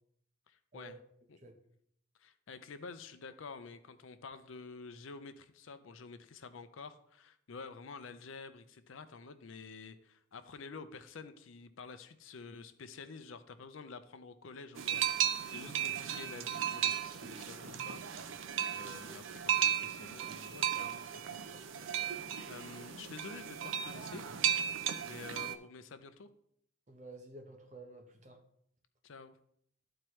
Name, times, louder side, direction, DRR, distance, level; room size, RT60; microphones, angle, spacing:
voice 1, 0.5-1.0 1.3-1.4 2.2-18.4 18.7-21.1 21.4-21.9 22.5-24.2 25.0-26.3 29.0-29.3, left 4 dB, 75° left, 10 dB, 0.5 m, -49 dB
sound 1, 14.8-25.5, right 9 dB, 75° right, 0.5 m, -35 dB
voice 2, 26.9-28.4, right 2 dB, 35° right, 3 dB, 1.0 m, -51 dB
12.5 x 4.4 x 3.1 m, 0.68 s
head